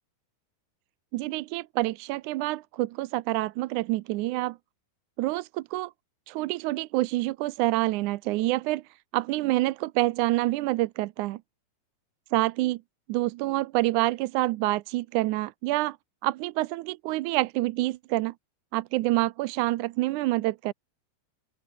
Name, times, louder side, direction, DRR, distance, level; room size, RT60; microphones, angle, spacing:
voice 1, 1.1-4.6 5.2-5.9 6.3-8.8 9.1-11.4 12.3-12.8 13.1-16.0 16.2-18.3 18.7-20.7, right 18 dB, 75° right, 2.0 m, -27 dB
open air
omnidirectional pair, 3.8 m